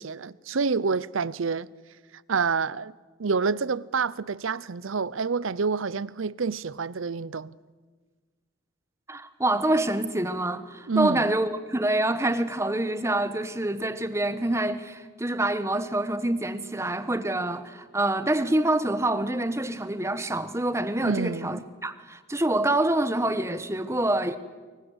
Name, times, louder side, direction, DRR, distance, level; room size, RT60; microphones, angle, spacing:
voice 1, 0.0-1.7 2.3-2.9 3.2-7.5 10.9-11.3 21.0-21.6, right 5 dB, 80° right, 0.7 m, -28 dB
voice 2, 9.1-24.4, right 1 dB, 15° right, 1.1 m, -26 dB
24.5 x 22.5 x 8.0 m
head